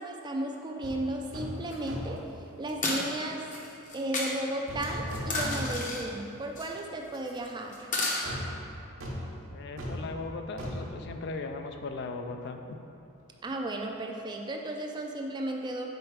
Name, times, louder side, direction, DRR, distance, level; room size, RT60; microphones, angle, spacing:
voice 1, 0.0-2.2 2.6-3.4 3.9-7.9 13.4-15.9, right 1 dB, 20° right, 2 dB, 0.3 m, -34 dB
sound 1, 0.8-1.0 1.3-1.6 1.9-2.3 4.7-6.1 6.5-6.6 8.2-11.9 12.2-12.3, equal, 70° right, 0.9 m, -38 dB
Lids & Sugar, 1.7-1.8 2.7-3.0 3.5-4.3 4.8-6.0 6.6-6.8 7.1-7.5 7.7-8.3, left 2 dB, 35° left, 0.8 m, -32 dB
voice 2, 9.5-12.8, left 3 dB, 55° left, 6 dB, 0.3 m, -38 dB
5.1 x 4.4 x 4.6 m, 2.7 s
head